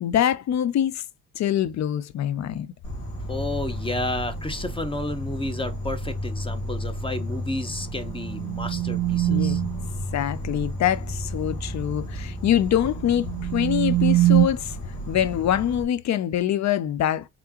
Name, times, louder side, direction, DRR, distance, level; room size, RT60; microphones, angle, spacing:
voice 1, 0.0-1.0 1.3-2.7 9.3-9.6 10.1-14.8 15.1-17.3, left 10 dB, 50° left, 0.6 m, -24 dB
Insect, 2.8-15.8, equal, 75° left, 2.0 m, -33 dB
voice 2, 3.3-9.6, left 2 dB, 15° left, 0.8 m, -31 dB
sound 1, 7.6-9.9 12.9-14.5, right 16 dB, 45° right, 0.4 m, -23 dB
3.7 x 3.4 x 2.8 m
supercardioid pair, 60°, 35 cm